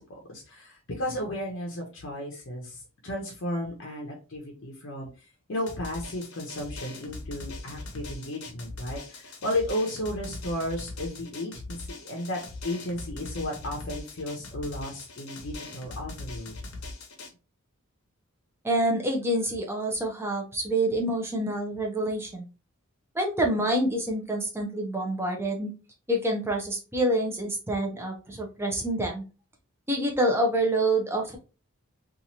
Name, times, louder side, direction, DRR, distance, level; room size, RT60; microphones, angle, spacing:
voice 1, 0.0-5.1 5.5-16.5, left 1 dB, 60° left, 0 dB, 0.7 m, -34 dB
Drum, 5.7-17.3, left 2 dB, 90° left, 0.8 m, -41 dB
voice 2, 18.6-22.5 23.1-25.7 26.1-29.2 29.9-31.4, right 1 dB, 10° right, 1 dB, 0.6 m, -27 dB
3.0 x 2.4 x 2.6 m, 0.32 s
head